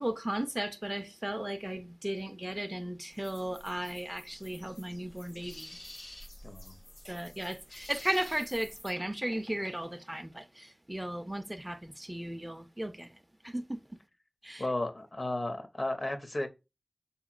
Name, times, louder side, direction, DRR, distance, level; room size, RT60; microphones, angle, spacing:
voice 1, 0.0-5.7 7.0-13.1 13.4-13.8 14.4-14.6, right 1 dB, 20° right, 0.4 m, -36 dB
sound 1, 3.1-8.9, left 1 dB, 90° left, 1.2 m, -50 dB
voice 2, 6.4-6.8 14.6-16.5, left 2 dB, 50° left, 0.6 m, -34 dB
3.8 x 2.8 x 2.4 m
wide cardioid pair, 50°, 0 cm